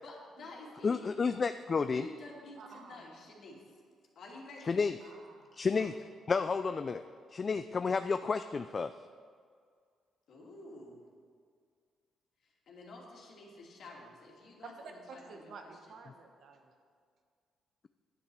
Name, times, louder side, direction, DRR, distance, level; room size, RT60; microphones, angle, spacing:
voice 1, 0.0-1.0 1.9-3.6 4.1-4.8 10.3-11.0 12.4-15.5, left 2 dB, 65° left, -2 dB, 2.7 m, -50 dB
voice 2, 0.8-2.1 4.7-4.9 5.6-5.9 6.3-7.0 7.3-8.9, left 5 dB, 35° left, 10 dB, 0.3 m, -31 dB
voice 3, 2.6-3.0 5.0-6.0 14.6-14.9 15.3-16.7, right 4 dB, 65° right, 4 dB, 1.4 m, -51 dB
10.5 x 8.6 x 6.2 m, 2.1 s
cardioid pair, 90°, 0 cm